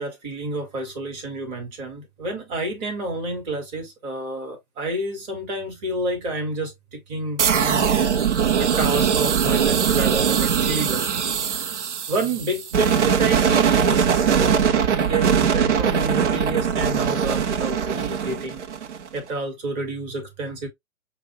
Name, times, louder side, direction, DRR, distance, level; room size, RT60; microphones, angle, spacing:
voice 1, 0.0-7.9 8.6-11.3 12.1-18.6 19.1-20.7, right 2 dB, 10° right, 0.7 m, -29 dB
sound 1, 7.4-19.2, right 7 dB, 55° right, 0.7 m, -21 dB
5.4 x 2.4 x 2.7 m
figure-of-eight pair, 130°, 43 cm